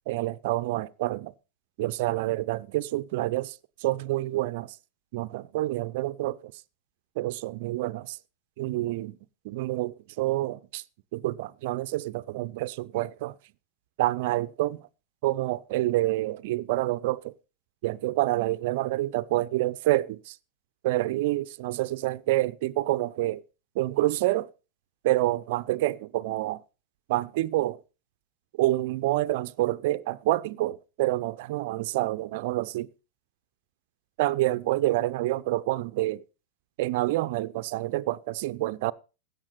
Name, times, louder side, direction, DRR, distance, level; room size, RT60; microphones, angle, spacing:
voice 1, 0.1-1.3 1.8-4.8 5.1-6.5 7.2-8.2 8.6-9.2 9.4-10.8 11.1-13.4 14.0-14.8 15.2-17.3 17.8-20.4 20.8-23.4 23.7-24.5 25.0-26.6 27.1-27.8 28.6-32.9 34.2-36.2 36.8-38.9, right 17 dB, 50° right, 0.5 m, -27 dB
16.0 x 10.0 x 4.0 m
figure-of-eight pair, 90°, 0 cm